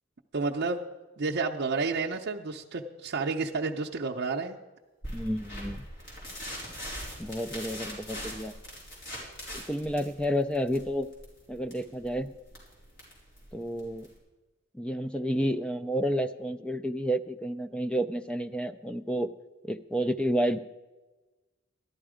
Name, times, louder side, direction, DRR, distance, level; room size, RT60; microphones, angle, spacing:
voice 1, 0.3-0.8 1.2-4.6, right 4 dB, 55° right, 0 dB, 0.6 m, -30 dB
sound 1, 5.0-14.2, equal, 60° left, 4.5 m, -42 dB
voice 2, 5.1-5.8 7.2-8.5 9.5-11.1 11.5-12.3 13.5-14.1 14.7-19.3 19.6-20.6, equal, 5° left, 10 dB, 0.3 m, -30 dB
13.5 x 11.5 x 5.0 m, 1.2 s
head